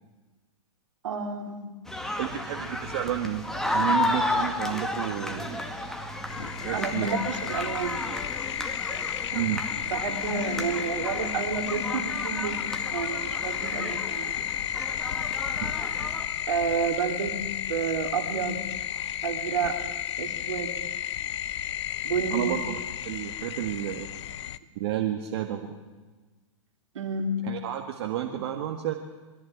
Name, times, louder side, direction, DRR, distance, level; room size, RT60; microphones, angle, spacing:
voice 1, 1.0-1.6 6.7-8.0 9.9-14.4 16.5-17.4 17.7-18.6 19.2-19.8 20.2-20.8 22.0-22.5 26.9-27.3, right 5 dB, 75° right, 4 dB, 3.1 m, -30 dB
sound 1, 1.9-16.2, left 1 dB, 5° left, 2.1 m, -33 dB
voice 2, 2.2-3.4 3.7-5.6 6.6-7.2 9.3-9.6 15.6-15.7 22.3-22.8 23.0-24.1 24.7-25.7 27.4-28.9, right 11 dB, 55° right, 4 dB, 1.8 m, -31 dB
sound 2, 6.3-24.6, left 11 dB, 65° left, 0.9 m, -33 dB
22.0 x 14.5 x 8.8 m, 1.3 s
hypercardioid pair, 120°, 16 cm